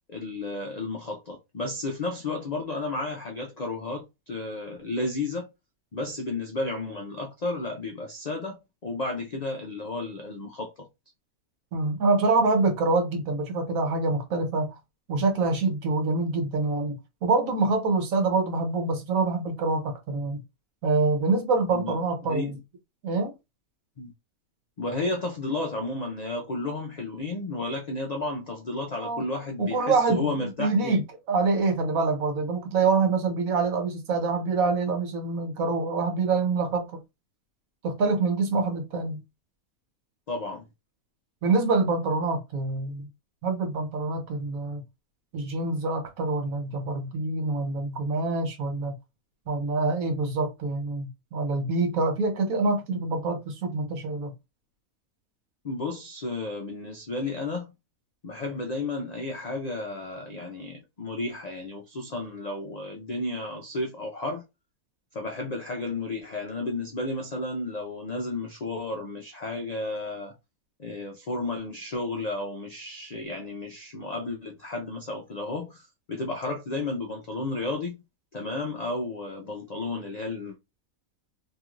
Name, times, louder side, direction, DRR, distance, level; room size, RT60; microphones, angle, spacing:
voice 1, 0.1-5.5 5.9-10.9 21.7-21.9 22.2-22.6 24.0-24.1 24.8-31.0 40.3-40.7 55.6-57.7 58.2-64.4 65.1-70.3 70.8-78.0 78.3-80.6, left 2 dB, 75° left, 0.3 m, -32 dB
voice 2, 11.7-14.8 15.1-20.4 20.8-22.6 23.0-23.3 29.0-29.2 29.6-37.0 37.8-39.2 41.4-43.1 43.4-44.8 45.3-48.9 49.5-54.3, right 3 dB, 75° right, 1.3 m, -26 dB
2.9 x 2.9 x 2.4 m
omnidirectional pair, 1.5 m